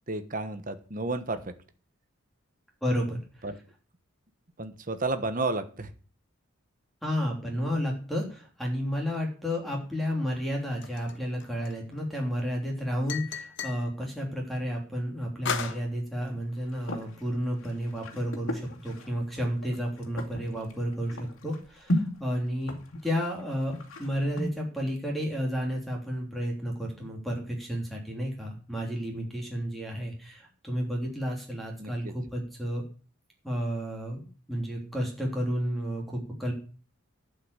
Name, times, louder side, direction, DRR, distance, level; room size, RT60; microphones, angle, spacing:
voice 1, 0.1-1.5 3.4-3.6 4.6-5.9 31.8-32.1, right 2 dB, 40° right, 10 dB, 1.2 m, -32 dB
voice 2, 2.8-3.2 7.0-22.7 23.0-32.8 33.4-36.5, equal, ahead, 0 dB, 3.1 m, -31 dB
sound 1, 10.8-12.0 13.1-13.9 15.5-15.8, left 6 dB, 60° left, 1.0 m, -34 dB
sound 2, 16.2-17.3 17.6-22.1 22.3-24.5, left 1 dB, 75° left, 2.3 m, -35 dB
11.5 x 5.8 x 8.1 m, 0.39 s
head